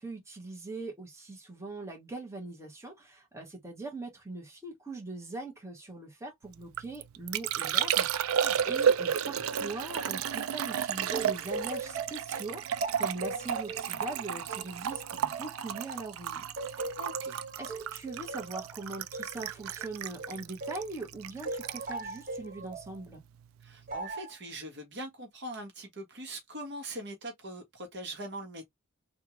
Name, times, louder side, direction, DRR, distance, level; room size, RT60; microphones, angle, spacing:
voice 1, 0.0-16.4 16.7-16.8 17.6-23.2, right 2 dB, 15° right, 1.5 m, -41 dB
Liquid, 6.5-23.2 23.4-24.0, right 8 dB, 85° right, 0.4 m, -33 dB
sound 1, 11.1-16.1 16.6-20.9 21.4-22.9 23.9-24.3, right 3 dB, 40° right, 1.8 m, -39 dB
voice 2, 17.0-17.4 23.6-28.7, right 1 dB, 55° right, 1.3 m, -42 dB
3.5 x 2.5 x 3.0 m
head